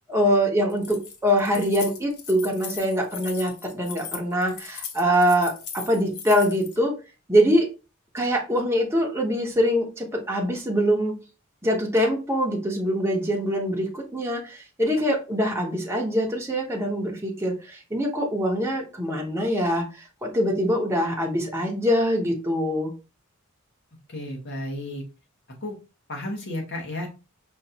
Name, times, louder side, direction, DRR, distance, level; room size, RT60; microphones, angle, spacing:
voice 1, 0.1-6.9 7.3-7.7 8.1-11.2 11.6-22.9, equal, 10° right, -1 dB, 0.8 m, -24 dB
Keys jangling, 0.7-6.8, left 7 dB, 75° left, 0.8 m, -38 dB
voice 2, 24.1-25.0 25.6-25.8 26.1-27.1, left 1 dB, 55° left, 1 dB, 1.3 m, -32 dB
5.1 x 2.5 x 2.8 m, 0.30 s
head